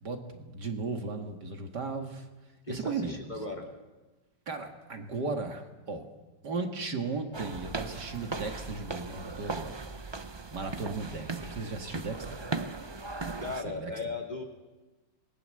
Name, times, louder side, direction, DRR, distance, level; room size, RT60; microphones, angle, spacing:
voice 1, 0.0-2.3 2.7-3.2 4.5-6.1 6.4-9.8 10.5-12.4 13.6-13.9, right 3 dB, 65° right, 5 dB, 2.8 m, -36 dB
voice 2, 2.7-3.7 13.4-14.4, left 3 dB, 25° left, 2 dB, 2.9 m, -37 dB
sound 1, 7.3-13.6, right 3 dB, 35° right, 0.4 m, -38 dB
27.0 x 22.0 x 7.9 m, 1.2 s
omnidirectional pair, 2.0 m